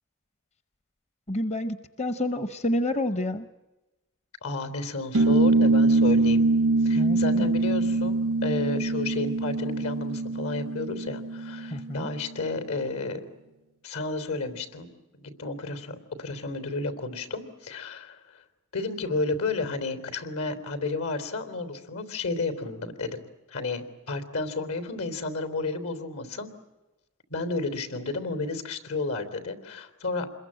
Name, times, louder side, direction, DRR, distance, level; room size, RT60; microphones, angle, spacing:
voice 1, 1.3-3.5 6.9-7.5 11.7-12.1, left 1 dB, 30° left, 12 dB, 0.8 m, -29 dB
voice 2, 4.4-6.4 6.8-13.2 13.8-14.9 15.1-18.4 18.7-23.2 23.5-26.5 27.3-30.3, left 3 dB, 75° left, 11 dB, 3.7 m, -32 dB
sound 1, 5.1-12.1, right 3 dB, 85° right, 0.9 m, -23 dB
27.5 x 21.5 x 8.8 m, 1.1 s
head